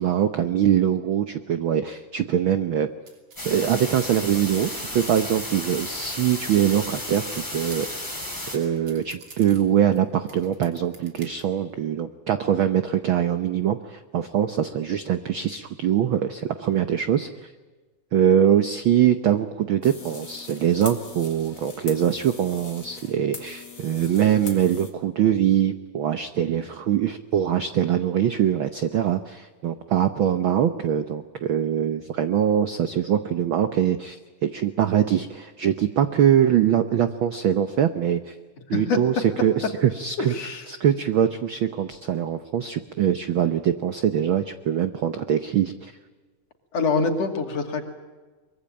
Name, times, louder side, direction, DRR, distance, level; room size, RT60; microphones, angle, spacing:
voice 1, 0.0-2.9 3.4-7.9 8.5-17.5 18.1-38.3 38.7-39.1 39.4-40.3 40.7-45.9, right 10 dB, 85° right, 10 dB, 1.1 m, -23 dB
sound 1, 3.1-5.2 5.8-10.0 10.3-11.4, right 4 dB, 40° right, 3.7 m, -49 dB
sound 2, 3.4-8.6, left 1 dB, 5° left, 5.8 m, -33 dB
sound 3, 19.8-24.9, left 4 dB, 25° left, 2.8 m, -41 dB
voice 2, 40.2-40.6 46.7-47.9, left 4 dB, 55° left, 4 dB, 3.5 m, -25 dB
23.5 x 23.0 x 8.9 m, 1.3 s
omnidirectional pair, 3.6 m